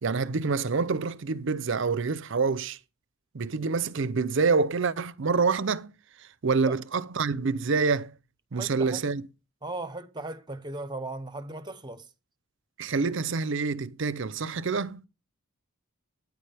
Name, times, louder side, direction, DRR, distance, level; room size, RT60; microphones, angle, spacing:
voice 1, 0.0-2.8 3.3-5.9 6.2-8.1 8.5-9.2 12.8-15.0, right 4 dB, 55° right, 0.6 m, -27 dB
voice 2, 8.5-9.0 9.6-12.1, right 2 dB, 20° right, 0.8 m, -37 dB
13.5 x 9.6 x 3.4 m
head